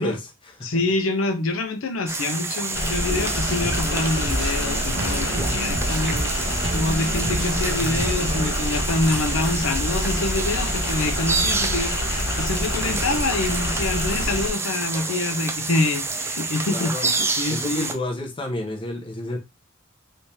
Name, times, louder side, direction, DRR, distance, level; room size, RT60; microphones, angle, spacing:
voice 1, 0.0-0.8 16.7-17.1 17.5-19.4, left 1 dB, 25° left, 0.7 m, -30 dB
voice 2, 0.6-17.9, left 2 dB, 85° left, 0.6 m, -26 dB
sound 1, 2.1-17.9, right 3 dB, 10° right, 0.3 m, -28 dB
sound 2, 2.7-14.5, left 1 dB, 55° left, 0.8 m, -27 dB
sound 3, 3.0-8.5, right 1 dB, 65° right, 0.9 m, -31 dB
3.4 x 3.1 x 2.8 m
head